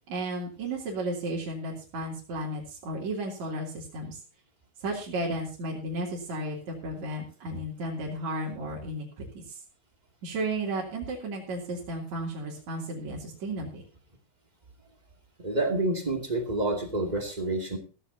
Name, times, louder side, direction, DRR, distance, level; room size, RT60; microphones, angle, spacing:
voice 1, 0.1-4.2 4.8-9.6 10.2-13.8, right 1 dB, 45° right, -4 dB, 3.8 m, -34 dB
voice 2, 15.4-17.8, right 2 dB, 20° right, 3 dB, 1.2 m, -28 dB
15.5 x 15.0 x 2.7 m, 0.36 s
omnidirectional pair, 4.9 m